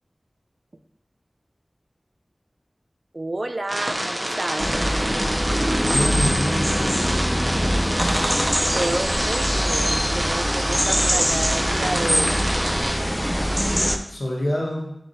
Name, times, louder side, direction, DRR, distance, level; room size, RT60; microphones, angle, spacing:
voice 1, 3.1-4.7 8.7-12.4, right 2 dB, 55° right, 8 dB, 0.5 m, -30 dB
sound 1, 3.7-13.0, equal, 35° right, 1.4 m, -28 dB
sound 2, 4.6-14.0, equal, 5° right, 0.5 m, -23 dB
voice 2, 5.7-8.3 14.1-15.0, equal, 80° left, -2 dB, 1.7 m, -29 dB
7.3 x 5.0 x 3.2 m, 0.78 s
wide cardioid pair, 50°, 0 cm